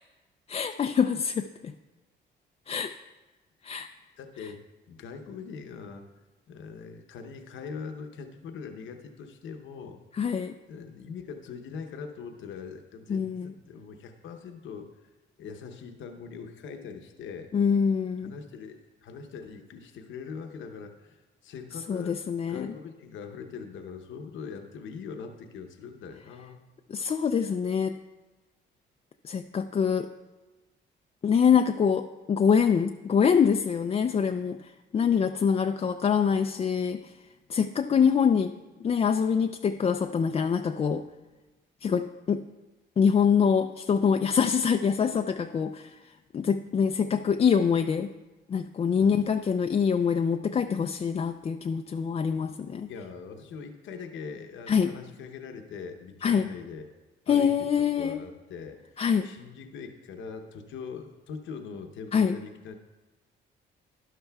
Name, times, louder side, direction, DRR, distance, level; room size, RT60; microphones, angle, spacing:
voice 1, 0.5-1.7 2.7-2.9 3.6-3.9 10.1-10.5 13.1-13.5 17.5-18.3 21.9-22.7 26.9-28.0 29.2-30.1 31.2-37.1 37.5-41.0 41.8-42.4 43.0-46.0 46.3-48.1 48.5-52.9 54.7-54.9 56.2-56.5 57.3-58.2 59.0-59.3 62.1-62.4, left 6 dB, 30° left, 7 dB, 0.3 m, -25 dB
voice 2, 4.2-4.6 4.9-6.1 6.5-10.0 10.7-15.1 15.4-17.5 18.2-22.2 22.5-26.7 27.3-27.5 49.0-49.3 52.9-56.9 57.3-62.7, left 5 dB, 75° left, 5 dB, 0.8 m, -42 dB
12.5 x 11.0 x 2.3 m, 1.2 s
cardioid pair, 90°, 20 cm